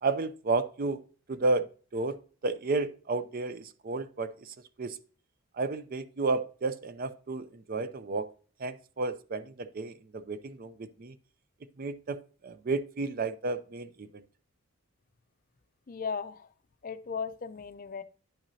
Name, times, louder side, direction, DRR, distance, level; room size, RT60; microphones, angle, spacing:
voice 1, 0.0-1.0 1.3-1.7 1.9-2.2 2.4-5.0 5.6-8.3 8.6-11.1 11.8-12.2 12.4-14.2, right 3 dB, 40° right, 13 dB, 0.4 m, -32 dB
voice 2, 15.9-16.5 16.8-18.0, left 5 dB, 40° left, 12 dB, 0.4 m, -36 dB
10.0 x 5.9 x 2.7 m, 0.40 s
head